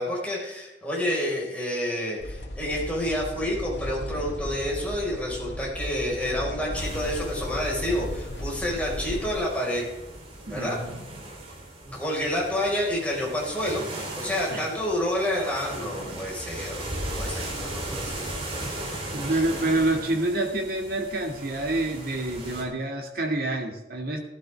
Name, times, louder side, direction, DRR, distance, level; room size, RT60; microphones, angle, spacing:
voice 1, 0.0-9.9 10.5-10.8 11.8-13.9 14.1-18.3 19.2-19.4, left 1 dB, 10° left, -4 dB, 4.9 m, -29 dB
sound 1, 2.2-9.3, left 1 dB, 85° left, 1.7 m, -36 dB
sound 2, 6.7-22.6, right 1 dB, 30° right, 3.3 m, -37 dB
voice 2, 10.5-11.0 14.5-14.7 18.7-24.2, right 2 dB, 55° right, 2 dB, 2.1 m, -28 dB
16.0 x 12.0 x 3.5 m, 0.99 s
head